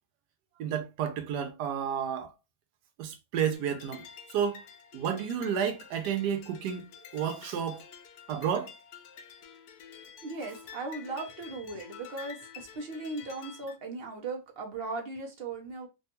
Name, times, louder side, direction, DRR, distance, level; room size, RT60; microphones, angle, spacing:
voice 1, 0.6-2.3 3.0-4.1 4.3-4.6 4.9-6.9 7.1-7.8 8.3-8.7, right 8 dB, 85° right, 1.2 m, -31 dB
sound 1, 3.5-13.8, left 8 dB, 75° left, 1.1 m, -49 dB
voice 2, 10.2-15.9, right 3 dB, 55° right, 0.7 m, -38 dB
3.4 x 2.3 x 2.8 m
omnidirectional pair, 1.7 m